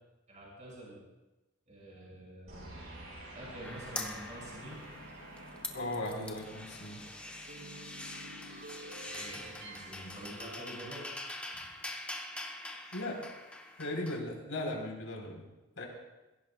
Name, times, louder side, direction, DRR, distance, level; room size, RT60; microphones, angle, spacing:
voice 1, 0.3-1.0 1.7-2.8 3.3-4.8 9.1-11.1, right 1 dB, 35° right, -5 dB, 6.0 m, -47 dB
sound 1, 2.5-11.0, right 1 dB, 75° right, 5.9 m, -49 dB
sound 2, 3.6-5.1 5.4-14.2, left 2 dB, 5° left, 0.8 m, -44 dB
voice 2, 5.7-7.0 12.9-13.2 13.8-15.4 15.8-15.9, left 1 dB, 85° left, 0 dB, 3.8 m, -37 dB
22.0 x 16.5 x 2.3 m, 1.0 s
head